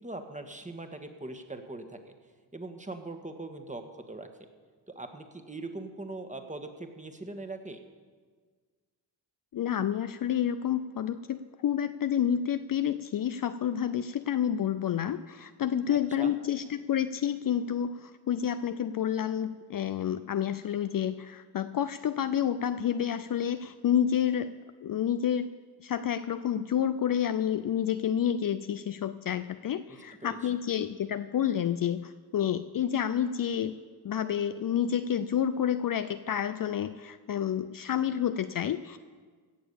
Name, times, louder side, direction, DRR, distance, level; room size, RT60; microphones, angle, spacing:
voice 1, 0.0-2.1 2.5-4.3 4.9-7.8 15.9-16.3 30.2-30.4, right 2 dB, 15° right, 6 dB, 1.7 m, -41 dB
voice 2, 9.5-24.5 24.8-25.5 25.8-33.8 34.0-39.0, left 9 dB, 45° left, 11 dB, 0.6 m, -29 dB
17.0 x 7.0 x 7.1 m, 1.5 s
supercardioid pair, 55°, 47 cm